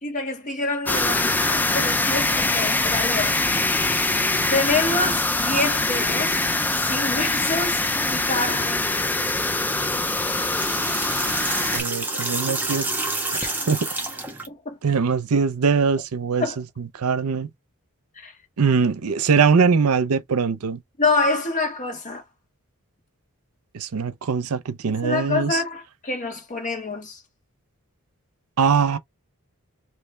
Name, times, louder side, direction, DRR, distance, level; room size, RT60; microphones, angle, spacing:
voice 1, 0.0-3.4 4.5-6.4 6.8-8.8 12.1-12.2 13.4-13.6 14.5-14.8 16.4-16.6 18.2-18.3 21.0-22.2 25.0-27.2, left 3 dB, 35° left, 1.6 m, -27 dB
sound 1, 0.8-11.8, left 2 dB, 10° left, 0.3 m, -23 dB
sound 2, 10.1-14.5, right 2 dB, 10° right, 1.1 m, -28 dB
voice 2, 11.7-12.9 13.7-13.9 14.8-16.4 17.0-17.5 18.6-20.8 23.7-25.6 28.6-29.0, right 5 dB, 90° right, 0.6 m, -21 dB
3.2 x 3.0 x 3.2 m
head